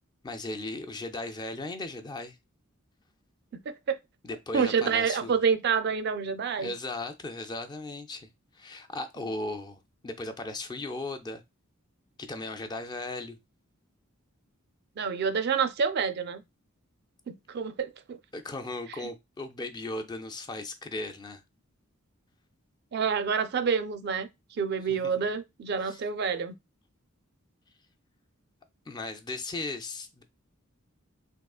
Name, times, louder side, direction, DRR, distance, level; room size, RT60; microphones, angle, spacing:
voice 1, 0.2-2.4 4.2-5.3 6.6-8.3 8.5-11.4 12.2-13.4 18.3-21.4 25.8-26.0 28.9-30.2, left 2 dB, 20° left, 0.3 m, -37 dB
voice 2, 4.5-6.7 15.0-16.4 17.3-18.2 19.0-19.1 22.9-26.6, right 6 dB, 50° right, 0.4 m, -28 dB
3.6 x 2.8 x 2.3 m
head